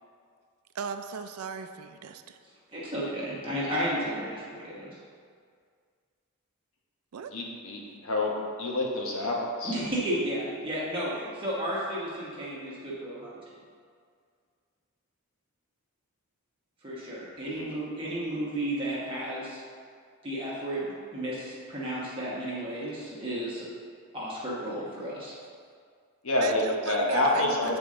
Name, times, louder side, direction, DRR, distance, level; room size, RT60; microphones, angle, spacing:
voice 1, 0.7-2.4 7.1-7.3 26.4-27.8, right 5 dB, 80° right, 9 dB, 0.4 m, -37 dB
voice 2, 2.7-4.9 9.6-13.4 16.8-19.6 20.2-23.7 24.1-25.3, right 1 dB, 25° right, -7 dB, 1.1 m, -33 dB
voice 3, 7.3-8.3 8.6-9.8 17.4-17.8 26.2-27.8, left 2 dB, 65° left, -1 dB, 1.0 m, -28 dB
8.0 x 4.3 x 3.7 m, 2.1 s
head